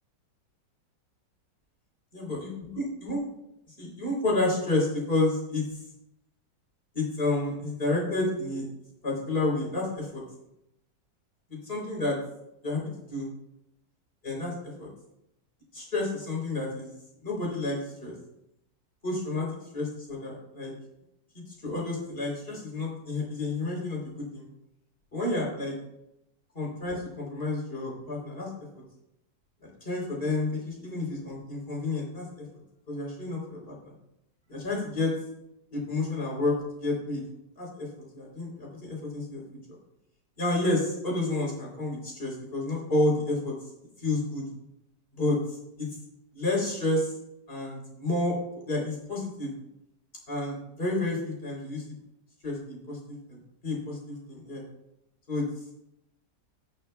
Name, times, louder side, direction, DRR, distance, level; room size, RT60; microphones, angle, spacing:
voice 1, 2.1-3.2 3.8-5.6 6.9-8.7 9.0-10.2 11.5-12.2 12.6-12.8 13.1-13.3 14.2-14.9 15.7-16.9 17.2-18.1 19.0-19.5 19.7-20.7 21.3-24.5 25.1-25.7 26.5-28.5 29.8-32.4 32.9-33.7 34.5-35.1 35.7-37.2 37.6-37.9 38.1-39.4 40.4-43.5 44.0-44.5 45.1-45.4 45.8-45.9 46.3-47.1 47.5-48.4 48.7-49.5 50.3-51.8 52.4-54.6 55.3-55.4, left 2 dB, 30° left, -3 dB, 3.7 m, -30 dB
18.5 x 6.4 x 2.3 m, 0.82 s
omnidirectional pair, 1.9 m